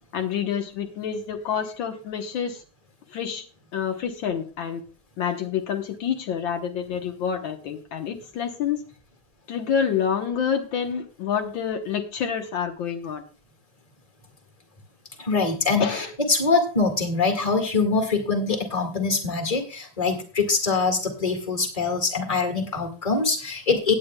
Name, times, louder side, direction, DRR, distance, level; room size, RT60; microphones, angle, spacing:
voice 1, 0.1-2.6 3.1-3.4 3.7-4.8 5.2-8.8 9.5-13.3 15.8-16.1, left 7 dB, 75° left, 5 dB, 1.8 m, -28 dB
voice 2, 15.2-23.9, left 4 dB, 20° left, 5 dB, 1.9 m, -24 dB
18.0 x 8.9 x 2.3 m, 0.35 s
omnidirectional pair, 2.2 m